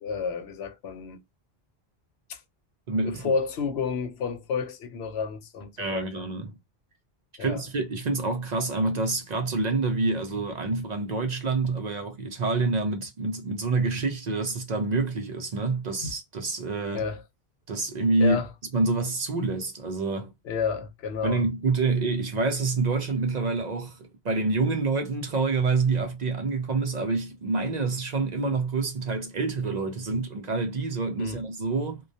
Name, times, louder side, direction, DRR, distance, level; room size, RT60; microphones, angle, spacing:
voice 1, 0.0-1.2 2.3-2.4 3.0-6.3 7.4-7.6 16.0-16.1 16.9-17.2 18.2-18.5 20.4-21.5 31.2-31.4, left 5 dB, 85° left, 0.9 m, -31 dB
voice 2, 2.9-3.3 5.8-6.5 7.4-17.0 17.7-18.4 18.7-20.3 21.2-32.0, right 3 dB, 55° right, 0.5 m, -27 dB
2.2 x 2.1 x 2.6 m
omnidirectional pair, 1.1 m